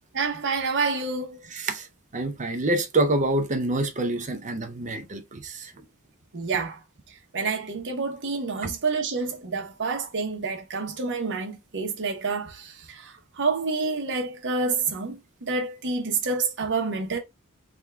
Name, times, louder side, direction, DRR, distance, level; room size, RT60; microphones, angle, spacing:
voice 1, 0.1-1.4 6.3-6.8 7.3-17.2, right 4 dB, 55° right, 1.0 m, -28 dB
voice 2, 1.5-1.9 2.1-5.7 8.6-8.7, right 2 dB, 35° right, 0.6 m, -26 dB
3.6 x 2.3 x 4.4 m
head